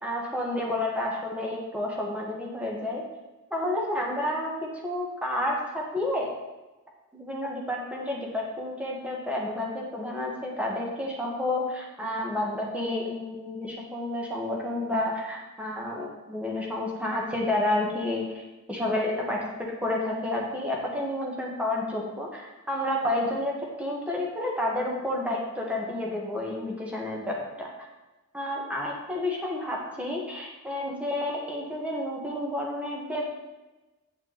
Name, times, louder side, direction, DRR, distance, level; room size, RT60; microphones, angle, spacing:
voice 1, 0.0-3.0 3.5-4.5 4.8-6.3 7.1-18.4 18.7-19.5 19.8-23.5 23.8-27.7 28.3-33.4, left 1 dB, 5° right, -2 dB, 1.6 m, -30 dB
8.9 x 6.1 x 4.1 m, 1.1 s
head